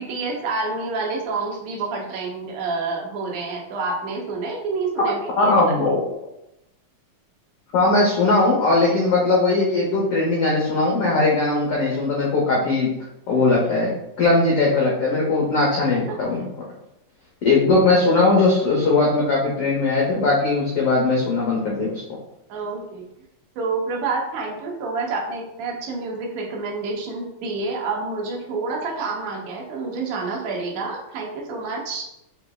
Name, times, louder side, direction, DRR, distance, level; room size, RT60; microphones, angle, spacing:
voice 1, 0.0-5.6 16.1-16.2 22.5-23.0 23.6-32.1, right 3 dB, 70° right, -1 dB, 1.9 m, -28 dB
voice 2, 5.4-6.0 7.7-12.9 13.3-13.9 14.2-16.4 17.4-22.0, left 3 dB, 85° left, -4 dB, 1.2 m, -19 dB
6.5 x 3.1 x 2.3 m, 0.83 s
omnidirectional pair, 3.7 m